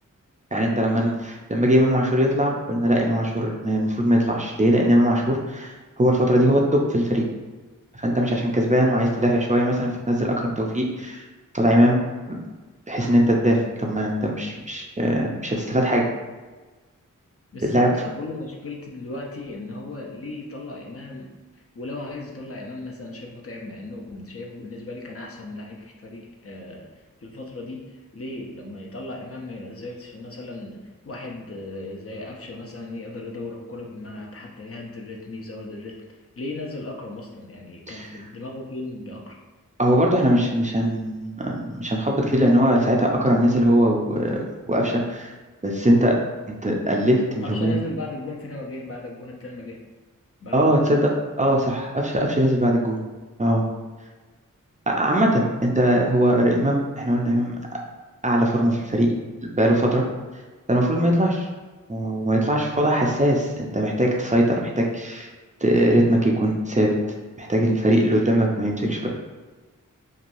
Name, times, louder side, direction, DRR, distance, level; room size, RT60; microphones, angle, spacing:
voice 1, 0.5-7.2 8.0-11.2 11.5-12.0 12.3-12.4 12.9-16.0 17.6-17.9 37.9-38.1 39.8-44.4 44.7-45.3 45.6-46.2 46.5-47.8 50.5-51.1 51.4-53.0 53.4-53.6 54.9-57.5 58.2-59.1 59.6-60.0 60.7-61.5 61.9-65.3 65.6-66.9 67.4-69.1, equal, 25° right, -1 dB, 0.5 m, -21 dB
voice 2, 17.5-21.3 21.7-26.9 27.2-36.0 36.4-39.4 47.4-49.8 50.4-51.0, left 2 dB, 45° left, -1 dB, 0.6 m, -36 dB
3.0 x 2.2 x 2.6 m, 1.3 s
cardioid pair, 40°, 33 cm